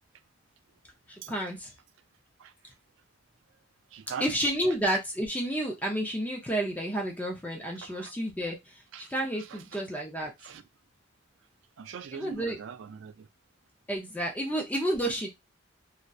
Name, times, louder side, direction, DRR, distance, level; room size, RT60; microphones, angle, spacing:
voice 1, 1.1-1.7 4.2-10.3 12.1-12.6 13.9-15.3, right 1 dB, 10° left, 0.4 m, -31 dB
voice 2, 3.9-4.3 7.9-8.1 8.9-9.1 9.5-9.8 10.4-10.6 11.8-13.3, right 7 dB, 70° right, 0.3 m, -41 dB
2.6 x 2.1 x 2.2 m
head